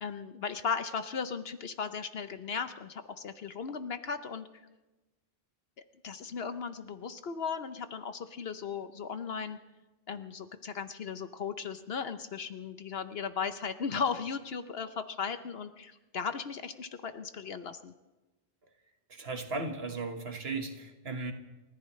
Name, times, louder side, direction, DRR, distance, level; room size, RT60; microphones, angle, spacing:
voice 1, 0.0-4.6 6.0-9.6 10.1-17.9, left 6 dB, 65° left, 10 dB, 1.0 m, -36 dB
voice 2, 19.1-21.3, right 3 dB, 65° right, 5 dB, 1.7 m, -36 dB
29.0 x 14.5 x 3.2 m, 1.1 s
omnidirectional pair, 1.1 m